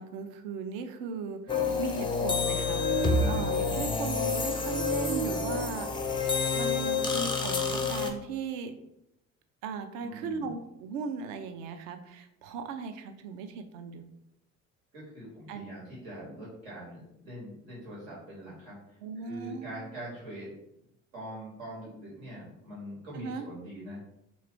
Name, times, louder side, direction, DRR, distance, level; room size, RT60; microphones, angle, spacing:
voice 1, 0.0-5.9 6.5-8.7 9.6-14.0 15.5-15.6 19.0-19.7 23.1-23.4, right 5 dB, 60° right, 7 dB, 0.5 m, -37 dB
sound 1, 1.5-8.1, left 4 dB, 15° left, 0.4 m, -28 dB
voice 2, 10.0-10.5 14.9-20.5 21.1-24.0, equal, 80° right, -7 dB, 1.3 m, -43 dB
3.0 x 2.3 x 3.3 m, 0.82 s
figure-of-eight pair, 50°, 40 cm